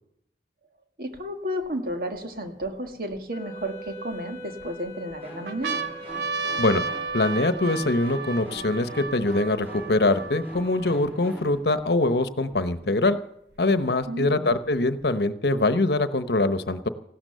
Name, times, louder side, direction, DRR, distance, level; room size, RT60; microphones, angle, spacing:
voice 1, 1.0-5.8 14.1-14.5, equal, 55° right, 5 dB, 1.8 m, -32 dB
sound 1, 1.1-1.2 1.9-3.2 3.9-4.6 5.1-5.2 5.5-11.1 11.8-11.9 12.1-13.1 14.0-15.0, right 4 dB, 80° right, 0.9 m, -34 dB
Wind instrument woodwind instrument, 3.3-7.9, equal, 20° left, 1.9 m, -43 dB
sound 2, 5.2-11.6, equal, 10° right, 3.1 m, -44 dB
voice 2, 7.1-13.2 13.6-16.9, left 2 dB, 70° left, 11 dB, 1.0 m, -23 dB
16.0 x 12.5 x 6.7 m, 0.78 s
head